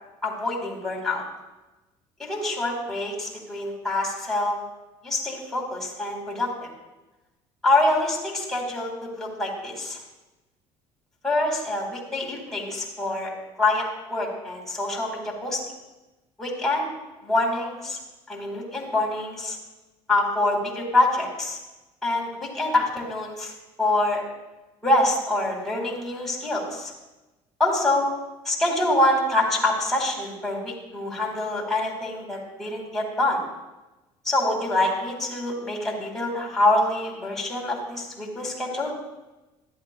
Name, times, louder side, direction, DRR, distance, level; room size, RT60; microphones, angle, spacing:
voice 1, 0.2-1.2 2.2-4.6 5.0-6.5 7.6-8.9 9.2-10.0 11.2-13.3 13.6-15.6 16.4-16.9 17.2-18.0 18.3-19.6 20.1-21.6 22.0-23.5 23.8-24.2 24.8-26.9 27.6-28.1 28.5-33.4 34.2-38.9, left 2 dB, 5° left, -4 dB, 2.0 m, -25 dB
13.5 x 10.5 x 2.2 m, 1.1 s
cardioid pair, 165°, 11 cm